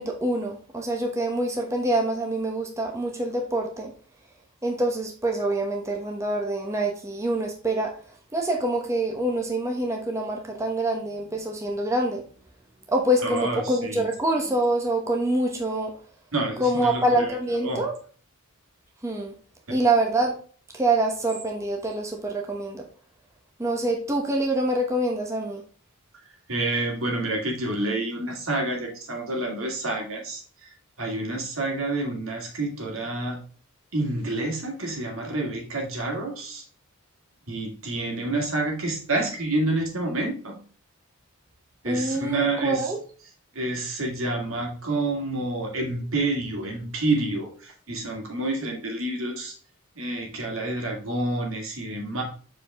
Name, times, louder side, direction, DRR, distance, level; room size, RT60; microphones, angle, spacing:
voice 1, 0.0-3.9 4.6-7.9 8.3-12.2 12.9-15.9 16.6-17.9 19.0-19.3 19.7-20.3 20.7-22.8 23.6-25.6 41.8-43.0, right 1 dB, 15° right, 0 dB, 1.0 m, -25 dB
voice 2, 13.2-14.1 16.3-17.1 17.6-17.8 26.5-30.7 31.0-33.4 33.9-36.6 37.5-40.6 41.8-42.9 43.5-49.5 50.0-52.2, right 2 dB, 70° right, 1 dB, 2.1 m, -28 dB
7.0 x 4.8 x 3.5 m, 0.42 s
head